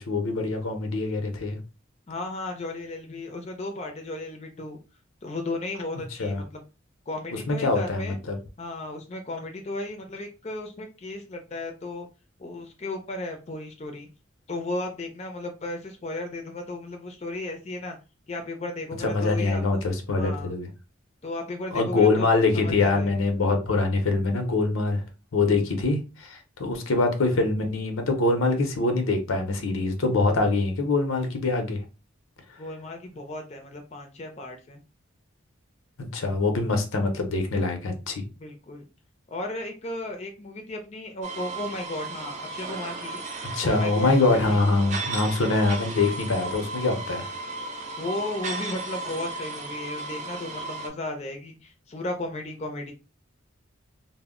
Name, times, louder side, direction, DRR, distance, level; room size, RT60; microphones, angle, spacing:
voice 1, 0.0-1.6 6.2-6.4 7.5-8.4 19.0-20.7 21.7-25.0 25.3-31.8 36.1-38.2 43.5-47.3, left 3 dB, 90° left, 0.6 m, -24 dB
voice 2, 2.1-4.8 5.2-6.6 7.1-8.2 8.6-12.1 12.4-14.1 14.5-18.0 18.3-19.8 20.1-20.5 21.2-23.1 25.4-25.7 32.6-34.8 38.3-38.8 39.3-43.2 43.6-44.6 48.0-52.9, left 2 dB, 30° left, 0.4 m, -35 dB
sound 1, 41.2-50.9, right 3 dB, 35° right, 0.4 m, -35 dB
2.1 x 2.0 x 3.6 m
head